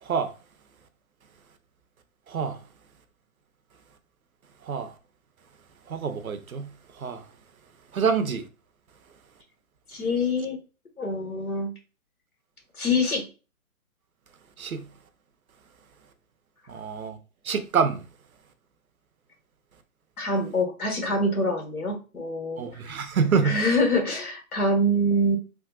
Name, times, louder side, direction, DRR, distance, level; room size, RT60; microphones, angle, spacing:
voice 1, 0.0-0.3 2.3-2.6 4.6-4.9 5.9-7.3 7.9-8.5 14.6-14.8 16.7-17.2 17.4-18.0 22.6-23.6, right 6 dB, 75° right, 0.7 m, -26 dB
voice 2, 9.9-10.6 11.0-11.7 12.8-13.3 20.2-22.6 23.4-25.4, left 1 dB, 80° left, 1.5 m, -25 dB
3.6 x 2.2 x 2.4 m
figure-of-eight pair, 145°, 43 cm